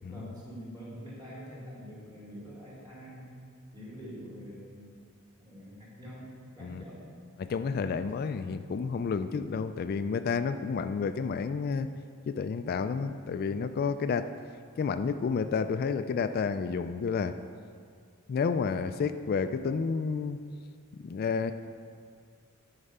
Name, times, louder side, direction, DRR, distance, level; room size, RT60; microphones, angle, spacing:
voice 1, 0.1-3.3 3.7-4.8 5.4-7.2, equal, 20° right, -7 dB, 2.5 m, -45 dB
voice 2, 7.4-11.9 12.3-14.3 14.8-17.3 18.3-20.4 21.0-21.5, left 5 dB, 45° left, 10 dB, 0.3 m, -30 dB
9.9 x 4.9 x 5.5 m, 2.1 s
head